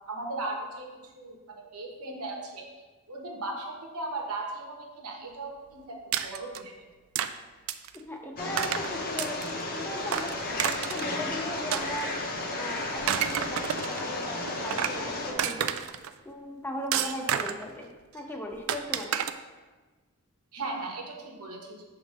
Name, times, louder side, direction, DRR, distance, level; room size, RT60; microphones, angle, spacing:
voice 1, 0.1-0.9 1.2-2.7 3.1-6.0 6.2-6.7 20.5-21.8, right 2 dB, 85° right, 0 dB, 1.1 m, -37 dB
sound 1, 6.1-6.6 7.2-7.3 7.7-8.0 8.6-8.9 9.2-9.6 10.1-11.1 11.7-12.4 12.9-14.0 14.5-15.0 15.4-16.1 16.9-17.7 18.7-19.3, right 9 dB, 65° right, 0.3 m, -30 dB
voice 2, 8.1-12.2 12.5-15.7 16.3-19.3, left 1 dB, 10° left, 2 dB, 0.4 m, -38 dB
sound 2, 8.4-15.3, left 2 dB, 40° left, 0.8 m, -33 dB
6.2 x 3.3 x 5.2 m, 1.3 s
head